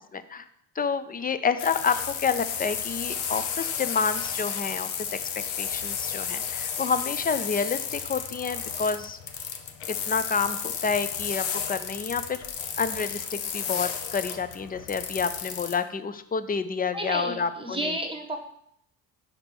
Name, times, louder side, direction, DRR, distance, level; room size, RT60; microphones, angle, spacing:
voice 1, 0.1-0.4 0.8-4.9 5.6-9.2 10.1-12.4 12.8-17.9, left 5 dB, 20° left, 12 dB, 0.4 m, -29 dB
sound 1, 1.6-15.8, left 8 dB, 80° left, 0.9 m, -33 dB
voice 2, 16.9-18.4, right 1 dB, 10° right, 3 dB, 1.2 m, -32 dB
5.1 x 4.4 x 5.8 m, 0.70 s
supercardioid pair, 75°, 46 cm